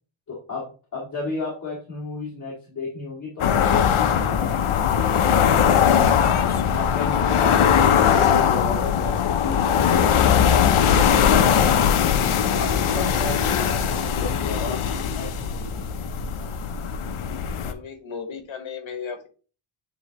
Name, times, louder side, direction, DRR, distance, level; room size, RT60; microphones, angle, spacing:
voice 1, 0.3-6.3 6.7-11.7 12.4-14.7 15.2-15.8, left 3 dB, 40° left, -6 dB, 2.5 m, -34 dB
sound 1, 3.4-17.7, left 8 dB, 90° left, 0.8 m, -20 dB
voice 2, 14.6-15.1 17.6-19.3, left 6 dB, 75° left, 6 dB, 1.5 m, -35 dB
9.2 x 3.8 x 2.9 m, 0.36 s
wide cardioid pair, 160°, 48 cm